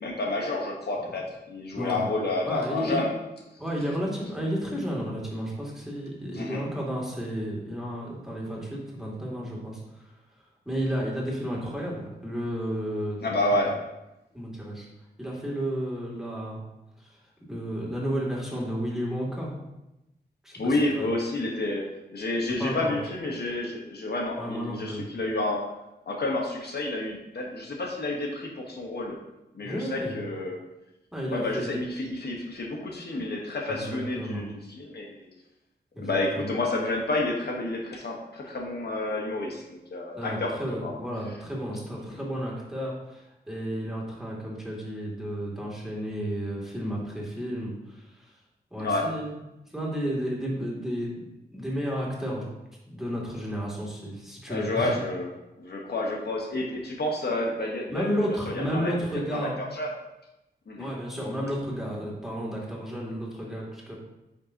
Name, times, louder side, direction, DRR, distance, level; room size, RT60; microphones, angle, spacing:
voice 1, 0.0-3.1 6.3-6.6 13.2-13.7 20.5-21.8 22.1-25.6 26.1-29.2 29.5-30.6 31.3-35.3 36.0-40.5 40.8-40.9 48.8-49.1 54.5-55.3 55.6-58.9 59.3-59.9 60.7-60.9, left 2 dB, 70° left, 0 dB, 1.2 m, -30 dB
voice 2, 1.7-2.1 2.4-3.0 3.6-10.1 10.6-13.2 14.3-14.9 15.2-16.6 17.0-17.2 17.5-19.5 20.4-21.1 22.6-23.0 24.3-25.0 29.6-30.2 31.1-31.8 33.7-34.5 35.9-36.5 40.1-48.3 48.7-49.3 49.7-52.4 52.9-54.9 57.9-59.6 60.8-63.9, equal, ahead, -4 dB, 2.5 m, -32 dB
9.4 x 5.5 x 2.8 m, 0.94 s
wide cardioid pair, 75°, 17 cm